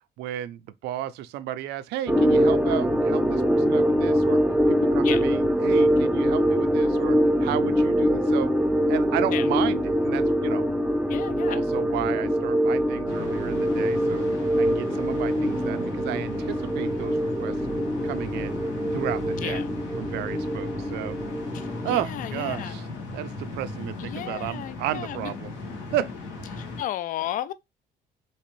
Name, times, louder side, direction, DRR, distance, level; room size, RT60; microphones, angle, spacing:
voice 1, 0.2-4.4 4.7-8.5 8.9-10.7 11.5-14.2 14.6-17.5 18.0-18.6 18.9-19.6 20.0-21.2 21.8-22.9 23.1-25.5 25.9-26.1 26.5-26.6, right 12 dB, 80° right, 0.4 m, -33 dB
sound 1, 2.1-22.0, equal, 5° right, 0.5 m, -23 dB
voice 2, 11.1-11.6 19.4-19.7 21.5-22.8 24.0-25.3 26.5-27.5, left 12 dB, 50° left, 0.4 m, -34 dB
sound 2, 13.1-26.8, left 3 dB, 85° left, 1.4 m, -37 dB
3.3 x 3.0 x 3.0 m
cardioid pair, 110°, 17 cm